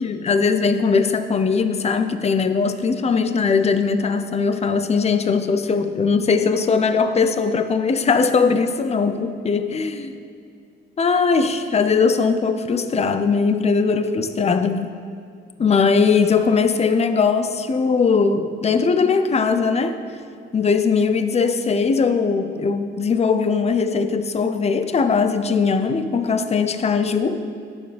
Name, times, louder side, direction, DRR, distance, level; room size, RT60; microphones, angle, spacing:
voice 1, 0.0-10.1 11.0-14.9 15.6-20.0 20.5-27.4, left 5 dB, 30° left, 9 dB, 0.7 m, -20 dB
19.5 x 7.0 x 3.5 m, 2.3 s
cardioid pair, 90°, 20 cm